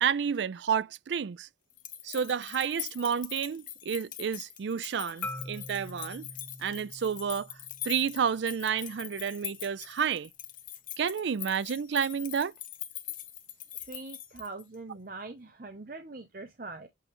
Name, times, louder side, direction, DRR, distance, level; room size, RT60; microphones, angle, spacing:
voice 1, 0.0-1.5 2.0-6.2 6.6-7.5 7.8-10.3 11.0-12.5, right 7 dB, 70° right, 0.4 m, -30 dB
sound 1, 1.7-14.7, left 12 dB, 45° left, 1.0 m, -42 dB
Marimba xylophone, 5.2-9.4, left 1 dB, 10° left, 0.5 m, -45 dB
voice 2, 13.7-16.9, right 3 dB, 45° right, 0.8 m, -43 dB
8.4 x 3.3 x 3.6 m
head